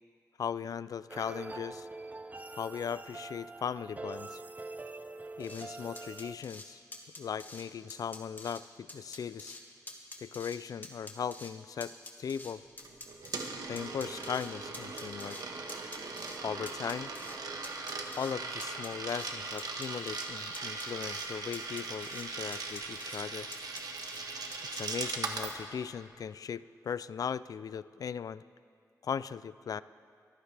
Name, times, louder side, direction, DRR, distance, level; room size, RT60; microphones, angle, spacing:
voice 1, 0.4-1.9 2.5-4.4 5.4-6.8 7.2-9.6 10.2-12.6 13.7-15.4 16.4-17.1 18.1-23.5 24.7-28.4 29.0-29.8, left 7 dB, 65° left, 17 dB, 0.3 m, -38 dB
sound 1, 1.1-6.4, right 2 dB, 25° right, 0.5 m, -44 dB
sound 2, 5.4-5.7 6.0-6.7 6.9-7.6 7.9-8.6 8.9-9.6 9.9-10.6 10.8-11.5 11.8-13.5 13.8-15.4 15.7-16.4 16.7-17.4 17.6-18.3 18.6-19.3 19.6-20.3 20.5-21.3 21.5-22.2 22.5-23.2 23.5-24.2 24.5-24.8, left 2 dB, 30° left, 1.7 m, -47 dB
Coin (dropping), 12.8-25.6, right 3 dB, 70° right, 1.3 m, -39 dB
23.0 x 14.5 x 3.4 m, 2.2 s
wide cardioid pair, 105°, 7 cm